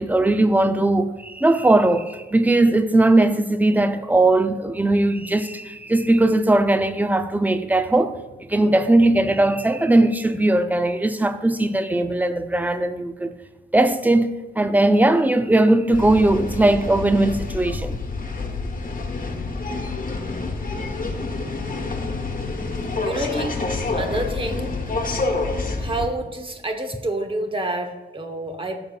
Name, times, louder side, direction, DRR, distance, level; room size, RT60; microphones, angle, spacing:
voice 1, 0.0-13.3 13.7-18.0, right 2 dB, 10° right, 0.5 m, -19 dB
sound 1, 15.9-26.1, left 3 dB, 45° left, 1.2 m, -28 dB
voice 2, 23.0-23.5 23.9-24.8 25.8-28.8, right 1 dB, 25° right, 1.1 m, -28 dB
14.0 x 6.9 x 2.4 m
wide cardioid pair, 105°, 20 cm